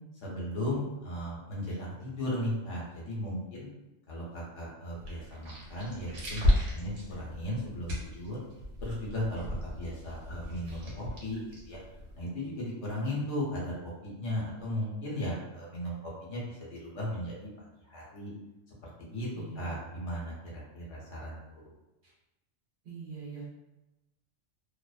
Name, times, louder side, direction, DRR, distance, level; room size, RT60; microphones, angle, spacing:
voice 1, 0.2-3.7 4.1-8.4 8.8-11.8 12.2-17.5 17.8-18.3 18.8-19.3 19.5-21.6, left 1 dB, 70° left, -5 dB, 1.1 m, -36 dB
sound 1, 4.9-12.2, left 1 dB, 85° right, 1.1 m, -34 dB
voice 2, 19.3-19.8 22.0-22.1 22.8-23.5, right 5 dB, 65° right, -5 dB, 1.0 m, -43 dB
2.6 x 2.0 x 2.3 m, 0.99 s
omnidirectional pair, 1.3 m